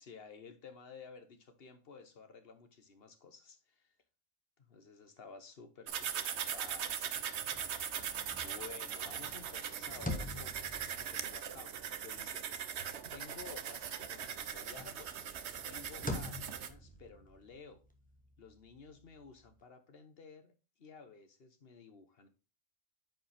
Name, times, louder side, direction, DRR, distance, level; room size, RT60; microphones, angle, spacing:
voice 1, 0.0-4.0 4.6-7.4 8.3-12.4 13.1-15.1 15.6-17.8 18.4-20.5 20.8-22.3, left 5 dB, 55° left, 1.4 m, -53 dB
sound 1, 5.9-16.7, right 8 dB, 75° right, 1.1 m, -40 dB
sound 2, 7.4-13.9 14.2-19.6, left 1 dB, 5° left, 1.2 m, -47 dB
9.1 x 5.2 x 3.5 m
omnidirectional pair, 1.2 m